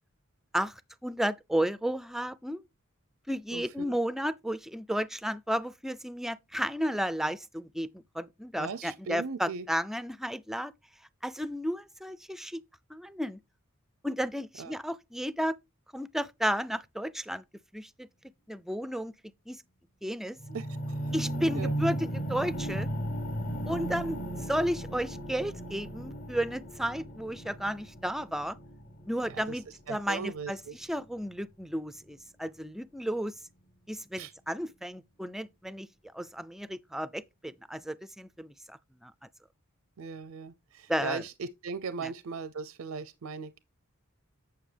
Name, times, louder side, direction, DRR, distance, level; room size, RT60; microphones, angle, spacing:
voice 1, 0.5-2.6 3.3-10.7 11.2-12.6 12.9-13.4 14.0-15.5 15.9-17.4 17.7-18.1 18.5-19.1 19.5-19.6 20.0-20.4 21.1-22.9 23.7-24.2 24.5-28.6 29.1-29.6 29.9-33.4 33.9-35.9 36.1-39.1 40.9-41.2 42.0-42.1, equal, ahead, 0.3 m, -33 dB
voice 2, 3.5-4.0 8.5-9.7 14.6-14.7 20.5-21.1 21.5-21.7 29.3-30.8 34.2-34.3 40.0-43.6, right 5 dB, 85° right, 0.5 m, -39 dB
sound 1, 20.4-30.5 31.2-31.3, right 1 dB, 45° left, 1.1 m, -36 dB
9.3 x 5.8 x 3.3 m
head